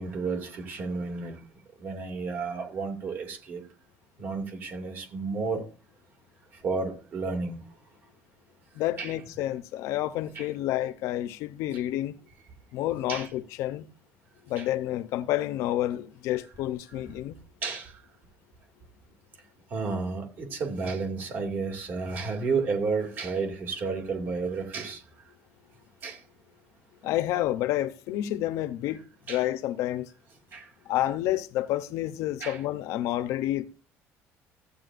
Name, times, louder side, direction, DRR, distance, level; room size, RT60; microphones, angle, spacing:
voice 1, 0.0-1.4 1.8-3.6 4.2-5.6 6.6-7.6 9.0-9.1 10.3-10.5 13.1-13.3 14.6-14.7 17.6-17.9 19.7-25.0 26.0-26.2 29.3-29.4 30.5-30.7 32.4-32.6, right 4 dB, 40° right, 2.3 m, -31 dB
voice 2, 8.7-12.2 12.7-13.9 14.5-17.4 27.0-29.0 29.3-30.1 30.9-33.6, left 14 dB, 75° left, 0.7 m, -29 dB
15.0 x 8.5 x 2.5 m
cardioid pair, 170°, 5 cm